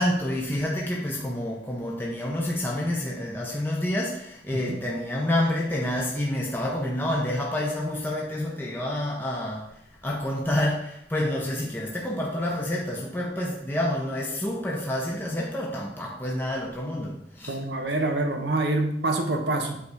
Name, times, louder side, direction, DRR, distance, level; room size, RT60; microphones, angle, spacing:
voice 1, 0.0-17.6, left 1 dB, 10° left, -3 dB, 0.8 m, -28 dB
voice 2, 17.5-19.8, right 2 dB, 70° right, 3 dB, 1.1 m, -26 dB
8.3 x 3.9 x 4.8 m, 0.77 s
head